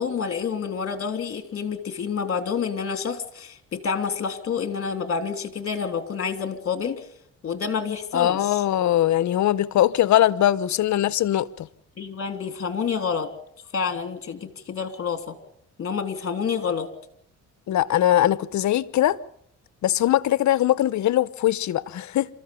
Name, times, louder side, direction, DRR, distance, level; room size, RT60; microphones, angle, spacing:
voice 1, 0.0-7.0 7.4-8.6 12.0-13.3 13.7-15.4 15.8-16.9, left 6 dB, 50° left, 3.1 m, -28 dB
voice 2, 8.1-11.7 17.7-19.2 19.8-22.3, left 12 dB, 70° left, 0.9 m, -21 dB
27.5 x 14.5 x 7.1 m
cardioid pair, 90°, 30 cm